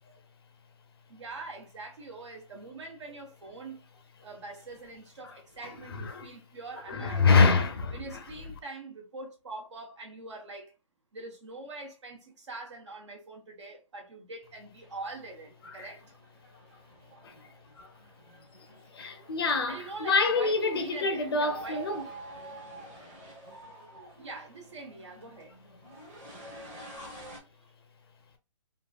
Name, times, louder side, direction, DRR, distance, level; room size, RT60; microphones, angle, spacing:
voice 1, 1.1-3.8 4.2-7.6 7.9-10.7 11.1-16.0 19.7-21.9 24.2-25.6 27.2-27.4, right 3 dB, 60° right, 1.0 m, -44 dB
voice 2, 5.9-6.3 6.9-8.2 15.6-15.9 17.2-17.3 17.8-17.9 18.9-22.0 27.0-27.2, left 4 dB, 50° left, 0.5 m, -26 dB
sound 1, 14.8-27.4, right 1 dB, 15° right, 0.9 m, -49 dB
2.9 x 2.6 x 2.3 m
hypercardioid pair, 160°, 17 cm